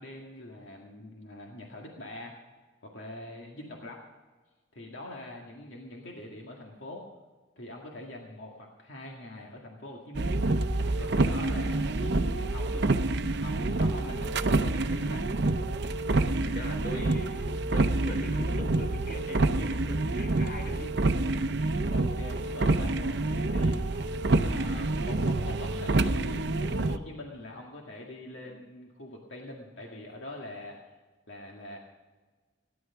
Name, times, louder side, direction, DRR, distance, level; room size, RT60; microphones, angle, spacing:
voice 1, 0.0-2.4 2.8-4.1 4.7-7.1 7.6-10.3 11.0-13.1 13.4-15.3 21.2-24.2 24.4-30.9 31.3-31.8, left 1 dB, 75° left, -1 dB, 1.9 m, -44 dB
sound 1, 10.1-27.0, right 2 dB, 60° right, 0.7 m, -27 dB
voice 2, 16.4-20.9 28.3-28.5, equal, 50° left, 2 dB, 3.7 m, -42 dB
17.5 x 11.0 x 5.8 m, 1.3 s
head